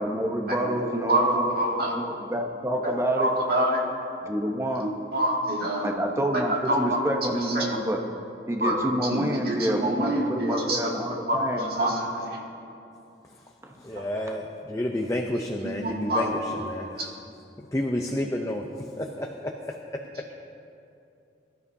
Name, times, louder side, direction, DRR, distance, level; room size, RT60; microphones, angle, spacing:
voice 1, 0.0-1.6 1.9-3.5 4.2-5.1 5.8-8.0 8.5-11.9 13.6-14.3, equal, 15° right, 2 dB, 0.9 m, -28 dB
voice 2, 0.8-1.9 2.8-3.8 5.1-5.9 6.5-7.0 7.5-7.8 8.6-8.7 9.1-10.8 11.3-12.3 15.6-16.4 17.0-17.1, right 1 dB, 55° right, -3 dB, 2.3 m, -26 dB
voice 3, 13.8-17.1 17.7-18.7 19.0-19.5, left 1 dB, 15° left, 1 dB, 0.6 m, -30 dB
22.0 x 12.5 x 2.7 m, 2.7 s
head